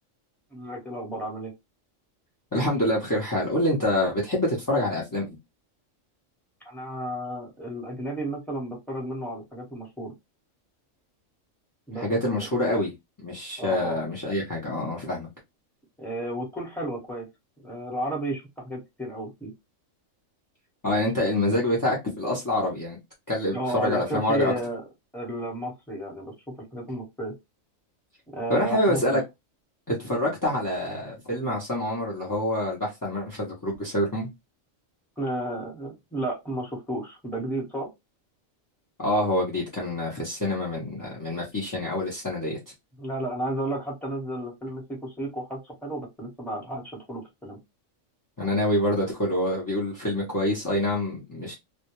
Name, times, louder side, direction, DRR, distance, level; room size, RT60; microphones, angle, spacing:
voice 1, 0.5-1.5 6.6-10.1 11.9-12.5 13.6-14.0 16.0-17.3 17.6-19.5 23.5-24.8 25.1-27.4 28.3-29.2 35.2-37.9 43.0-47.6, right 1 dB, ahead, 0.8 m, -33 dB
voice 2, 2.5-5.4 11.9-12.9 13.2-15.3 20.8-23.0 23.3-24.5 28.5-29.2 29.9-34.3 39.0-42.6 48.4-51.5, left 1 dB, 25° left, 0.4 m, -26 dB
2.2 x 2.1 x 2.9 m
omnidirectional pair, 1.4 m